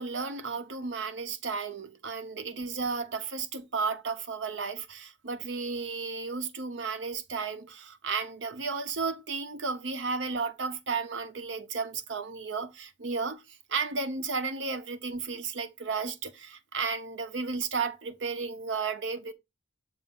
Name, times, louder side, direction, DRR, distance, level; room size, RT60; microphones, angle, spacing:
voice 1, 0.0-19.3, right 4 dB, 80° right, 0.8 m, -33 dB
6.8 x 2.6 x 5.3 m
head